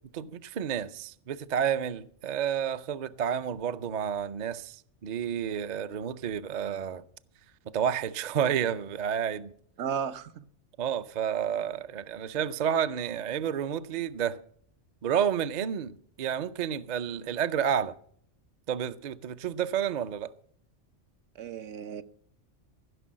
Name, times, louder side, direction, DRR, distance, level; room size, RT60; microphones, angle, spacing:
voice 1, 0.1-4.8 5.0-7.0 7.7-9.5 10.8-14.4 15.0-17.9 18.7-20.3, right 8 dB, 50° right, 0.5 m, -30 dB
voice 2, 9.8-10.4 21.4-22.0, right 7 dB, 65° right, 1.0 m, -34 dB
15.5 x 6.1 x 7.4 m
omnidirectional pair, 1.3 m